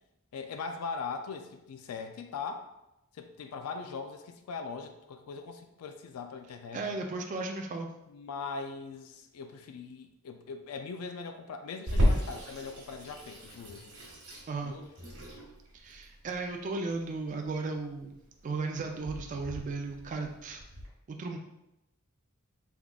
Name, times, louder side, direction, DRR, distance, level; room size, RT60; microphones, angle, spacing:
voice 1, 0.3-2.7 3.1-6.8 8.1-14.0 14.6-14.9, left 5 dB, 90° left, 6 dB, 0.4 m, -40 dB
voice 2, 6.7-7.9 14.5-14.7 15.7-20.6 21.1-21.4, right 3 dB, 35° right, 3 dB, 0.3 m, -35 dB
Water tap faucet / Sink (filling or washing), 11.9-20.9, equal, 75° right, 1.2 m, -34 dB
3.5 x 3.5 x 2.3 m, 0.88 s
head